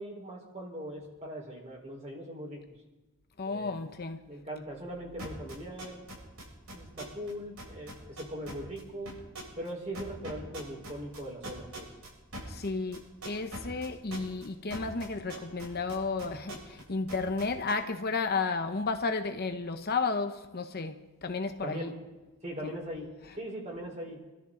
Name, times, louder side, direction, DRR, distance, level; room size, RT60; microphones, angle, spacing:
voice 1, 0.0-2.6 3.5-3.7 4.3-6.0 6.7-9.2 9.6-11.9 21.6-21.9 22.4-23.1 23.4-24.2, right 1 dB, 30° right, 4.4 m, -40 dB
voice 2, 3.4-4.2 12.5-21.0 21.2-21.9 22.6-22.7 23.2-23.4, left 4 dB, 45° left, 0.9 m, -33 dB
sound 1, 5.2-7.3 7.6-8.8 9.1-9.7 9.9-16.8 17.1-17.7, right 1 dB, 65° right, 7.3 m, -42 dB
28.0 x 13.0 x 3.9 m
head